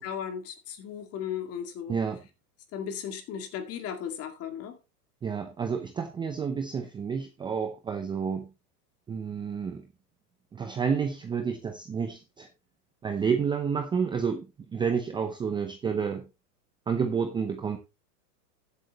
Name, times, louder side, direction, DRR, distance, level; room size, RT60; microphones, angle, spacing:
voice 1, 0.0-2.0 2.7-4.8, left 8 dB, 30° left, 2.2 m, -36 dB
voice 2, 1.9-2.2 5.2-8.5 9.1-9.8 10.5-12.5 13.0-14.5 14.7-16.3 16.9-17.8, right 6 dB, 10° right, 0.6 m, -30 dB
14.0 x 8.2 x 3.0 m
supercardioid pair, 140°, 48 cm